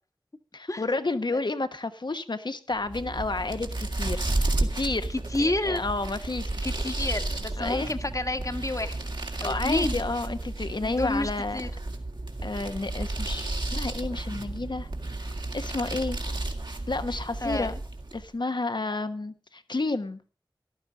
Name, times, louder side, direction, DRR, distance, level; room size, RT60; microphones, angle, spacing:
voice 1, 0.5-4.3 4.6-5.1 5.4-6.5 7.6-7.9 9.4-11.6 12.4-14.9 15.5-16.2 16.9-17.7 18.1-20.2, left 3 dB, 70° left, 10 dB, 1.2 m, -30 dB
sound 1, 2.8-18.3, right 2 dB, 70° right, 2.3 m, -32 dB
voice 2, 5.3-5.8 6.6-9.1 9.4-10.0 10.8-11.7 17.4-17.7, left 2 dB, 45° left, 9 dB, 1.4 m, -29 dB
14.0 x 12.0 x 4.9 m, 0.36 s
wide cardioid pair, 40°, 8 cm